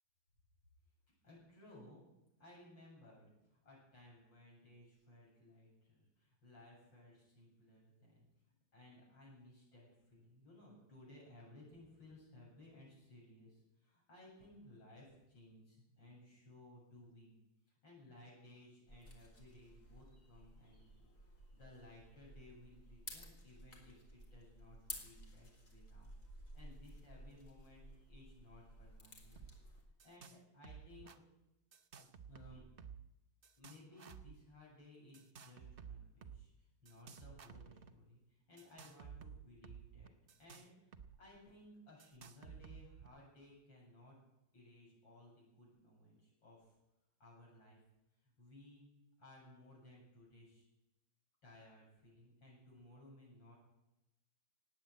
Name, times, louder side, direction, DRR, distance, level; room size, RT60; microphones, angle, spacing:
voice 1, 1.2-2.0 2.4-8.2 8.7-17.4 17.8-21.1 21.5-26.1 26.5-29.4 30.0-31.1 32.3-32.6 33.6-40.1 40.4-40.9 41.2-44.2 44.5-46.7 47.2-47.8 48.2-48.8 49.2-50.7 51.4-53.6, left 1 dB, 60° left, -4 dB, 8.3 m, -60 dB
sound 1, 18.9-29.8, left 1 dB, 40° left, 3.0 m, -55 dB
sound 2, 29.4-29.5 29.8-30.4 30.6-31.2 31.7-33.1 33.4-34.3 35.1-36.4 36.9-37.9 38.6-41.1 41.3-41.4 42.0-43.1, right 7 dB, 60° right, 0.5 m, -54 dB
18.0 x 8.3 x 9.1 m, 0.92 s
omnidirectional pair, 2.3 m